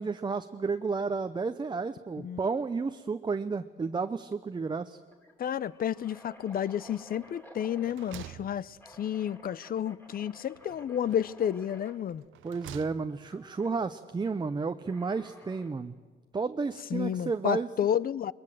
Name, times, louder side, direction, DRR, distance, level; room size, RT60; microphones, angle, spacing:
voice 1, 0.0-5.0 12.4-16.0 16.3-17.7, right 4 dB, 20° right, 0.7 m, -32 dB
sound 1, 3.8-4.1 4.4-4.5 5.1-8.3 8.8-12.0 13.3-13.7 14.9-15.8, equal, 10° left, 2.9 m, -53 dB
voice 2, 5.4-12.2 16.9-18.3, left 9 dB, 45° left, 0.6 m, -31 dB
sound 2, 6.9-7.4 7.7-9.3 10.5-11.4 12.1-13.4, right 13 dB, 80° right, 0.7 m, -49 dB
21.5 x 20.5 x 7.8 m
cardioid pair, 90°, 20 cm